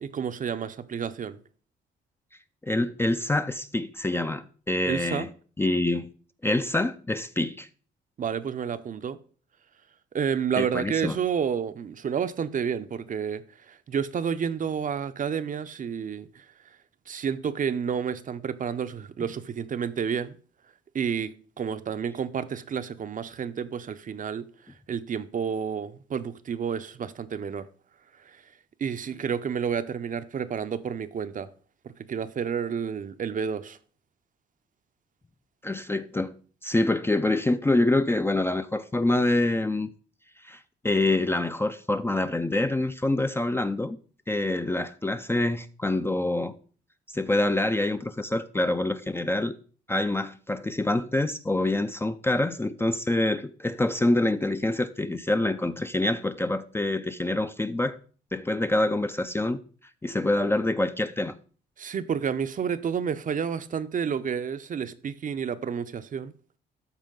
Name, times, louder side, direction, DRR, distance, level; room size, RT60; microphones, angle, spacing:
voice 1, 0.0-1.4 4.8-5.3 8.2-9.2 10.1-16.4 17.1-20.4 20.9-24.4 24.9-27.7 28.8-31.5 32.1-33.8 61.8-66.3, right 7 dB, 40° right, 0.6 m, -30 dB
voice 2, 2.6-5.3 5.6-6.1 6.4-7.7 10.6-11.2 35.6-36.3 36.6-39.9 40.4-40.6 40.8-44.0 44.3-46.5 47.1-49.6 49.9-58.0 58.3-59.6 60.0-61.4, left 2 dB, 10° left, 0.4 m, -26 dB
13.0 x 4.3 x 3.8 m
cardioid pair, 90°, 20 cm